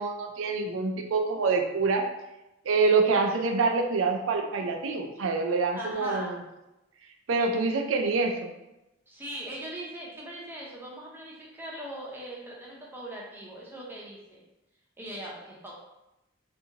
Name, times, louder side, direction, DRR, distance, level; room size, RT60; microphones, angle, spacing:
voice 1, 0.0-2.1 2.7-6.4 7.3-8.5, right 4 dB, 85° right, 3 dB, 0.4 m, -26 dB
voice 2, 5.7-6.3 9.1-14.5 15.0-15.7, right 1 dB, 10° right, -4 dB, 0.5 m, -40 dB
2.7 x 2.5 x 2.7 m, 0.94 s
head